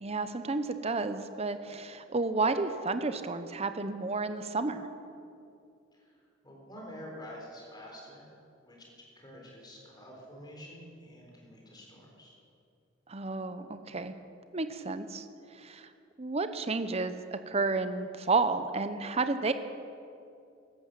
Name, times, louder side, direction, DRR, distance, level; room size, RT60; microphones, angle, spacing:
voice 1, 0.0-4.9 13.1-14.1 14.5-15.2 15.5-15.9 16.2-19.5, right 3 dB, 35° right, 10 dB, 0.8 m, -31 dB
voice 2, 5.9-8.3 8.6-12.4, equal, 20° left, -2 dB, 4.1 m, -48 dB
14.0 x 12.0 x 7.7 m, 2.5 s
head